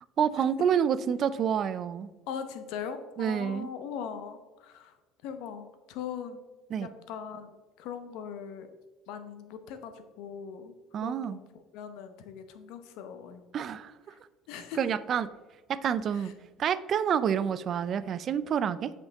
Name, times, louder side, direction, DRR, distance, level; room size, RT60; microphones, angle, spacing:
voice 1, 0.2-2.1 3.2-3.7 6.7-6.9 10.9-11.4 13.5-13.9 14.8-15.3 15.7-16.3 16.6-18.9, right 8 dB, 40° right, 15 dB, 0.4 m, -28 dB
voice 2, 2.3-4.9 5.2-6.4 6.8-8.7 9.1-10.7 11.0-11.4 11.7-13.4 14.5-14.8 16.1-16.3, left 7 dB, 75° left, 9 dB, 0.8 m, -40 dB
7.9 x 5.3 x 3.5 m, 1.2 s
cardioid pair, 130°, 0 cm